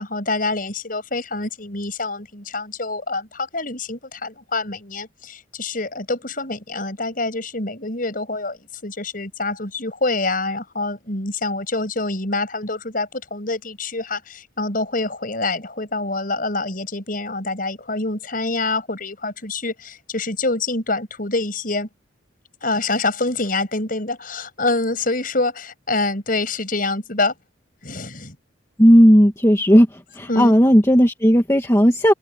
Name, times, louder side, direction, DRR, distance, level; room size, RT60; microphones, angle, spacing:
voice 1, 0.0-21.9 22.6-27.3 27.8-28.4 30.3-30.5, left 2 dB, 45° left, 7.2 m, -26 dB
voice 2, 28.8-29.9 30.2-32.1, equal, 15° left, 1.8 m, -13 dB
open air
head